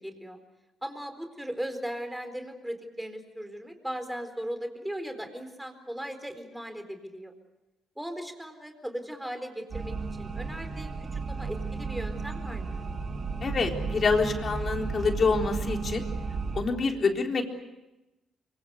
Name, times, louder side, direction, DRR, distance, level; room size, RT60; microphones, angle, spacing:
voice 1, 0.0-0.4 0.8-7.3 8.0-12.8, equal, 5° right, 6 dB, 4.2 m, -38 dB
sound 1, 9.7-16.6, right 4 dB, 45° right, 3.6 m, -33 dB
voice 2, 13.4-16.0 16.5-17.4, left 4 dB, 45° left, 3 dB, 3.9 m, -26 dB
24.5 x 24.5 x 8.2 m, 0.99 s
cardioid pair, 90°, 0 cm